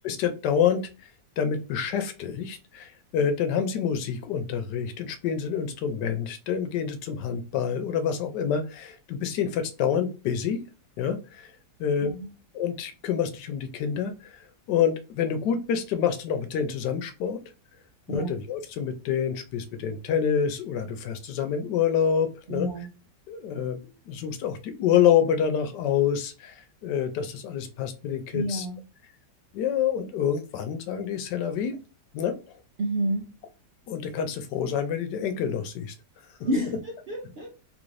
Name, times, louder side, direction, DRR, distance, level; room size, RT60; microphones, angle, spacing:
voice 1, 0.0-1.1 1.4-10.6 11.0-11.5 11.8-12.1 12.5-17.4 18.1-22.7 23.3-28.7 29.5-31.8 32.1-32.6 33.9-35.9, left 8 dB, 80° left, 8 dB, 1.2 m, -27 dB
voice 2, 12.0-12.3 18.1-18.3 22.5-22.9 28.3-28.8 32.8-33.3 36.4-37.5, right 1 dB, 60° right, -1 dB, 0.6 m, -29 dB
3.5 x 2.6 x 3.1 m, 0.32 s
omnidirectional pair, 1.8 m